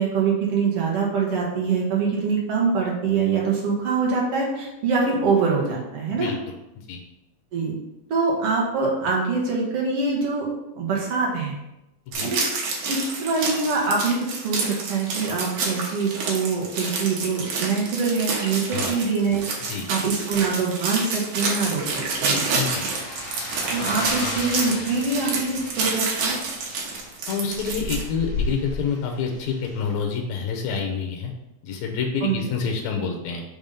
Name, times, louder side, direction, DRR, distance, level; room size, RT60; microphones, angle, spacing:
voice 1, 0.0-6.3 7.5-7.7 8.1-10.5 10.8-11.5 12.2-12.4 12.9-19.4 19.9-21.8 22.2-22.4 23.7-26.4 32.2-32.4, right 4 dB, 60° right, -3 dB, 2.3 m, -24 dB
sound 1, 12.1-28.0, right 3 dB, 90° right, 2.6 m, -28 dB
sound 2, 21.7-30.0, left 2 dB, 55° left, 1.4 m, -34 dB
voice 2, 22.5-22.9 27.3-31.3 31.6-33.4, left 5 dB, 75° left, 2 dB, 2.0 m, -27 dB
5.5 x 3.5 x 5.3 m, 0.92 s
omnidirectional pair, 3.3 m